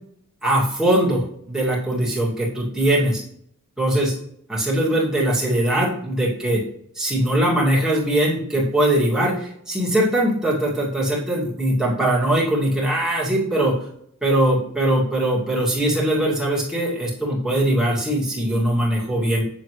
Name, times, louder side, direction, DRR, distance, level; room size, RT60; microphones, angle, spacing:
voice 1, 0.4-3.2 3.8-4.1 4.5-6.6 7.0-13.8 14.2-19.4, right 1 dB, 5° right, -6 dB, 2.4 m, -21 dB
7.7 x 6.9 x 3.2 m, 0.70 s
head